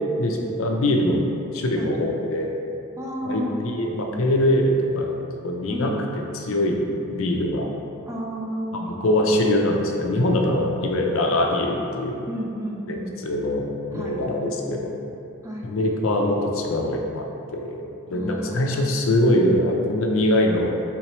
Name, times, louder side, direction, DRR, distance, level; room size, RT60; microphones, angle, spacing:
voice 1, 0.2-1.2 1.5-2.5 3.2-5.1 5.4-5.9 6.3-7.7 8.7-12.1 12.9-13.6 13.9-15.0 15.6-17.3 17.5-17.8 18.1-20.7, left 1 dB, 65° left, 1 dB, 0.5 m, -23 dB
voice 2, 3.0-3.6 5.7-6.0 8.1-8.9 12.3-13.2 13.9-14.2 15.4-15.7 18.1-18.9, equal, 15° right, -2 dB, 0.3 m, -32 dB
4.3 x 3.7 x 3.0 m, 2.7 s
head